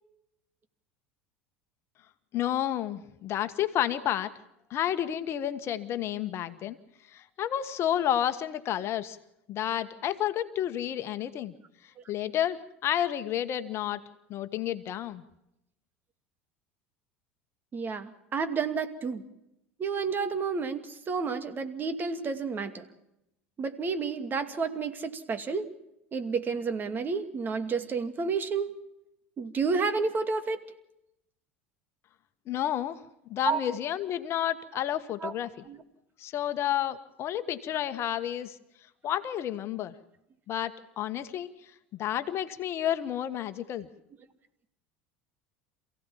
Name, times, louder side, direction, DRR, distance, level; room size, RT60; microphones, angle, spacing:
voice 1, 2.3-4.3 4.7-6.8 7.1-9.2 9.5-11.5 12.1-14.0 14.3-15.2 32.5-33.0 33.3-35.5 36.2-38.5 39.0-39.9 40.5-41.5 41.9-43.9, left 11 dB, 45° left, 11 dB, 1.4 m, -30 dB
voice 2, 17.7-19.2 19.8-22.9 23.6-25.7 26.1-28.7 29.4-30.6 33.4-33.6 35.2-35.3 35.7-35.8, right 5 dB, 30° right, 9 dB, 2.5 m, -30 dB
28.0 x 16.5 x 7.4 m, 0.84 s
figure-of-eight pair, 70°, 6 cm